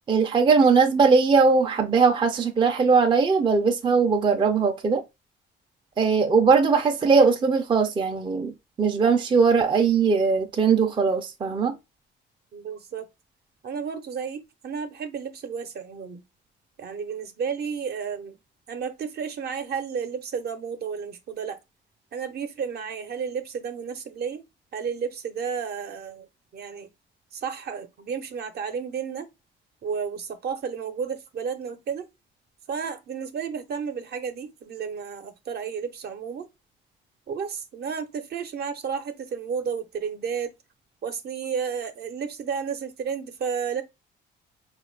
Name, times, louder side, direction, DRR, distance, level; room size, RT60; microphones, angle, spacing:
voice 1, 0.1-5.0 6.0-11.8, right 5 dB, 25° right, 0.5 m, -20 dB
voice 2, 12.5-13.1 13.6-16.2 16.8-18.4 18.7-21.6 22.1-24.4 24.7-26.3 26.5-26.9 27.3-29.3 29.8-32.1 32.7-36.5 37.3-40.5 41.0-43.8, right 6 dB, 55° right, 0.7 m, -32 dB
4.4 x 2.4 x 3.2 m
cardioid pair, 115°, 20 cm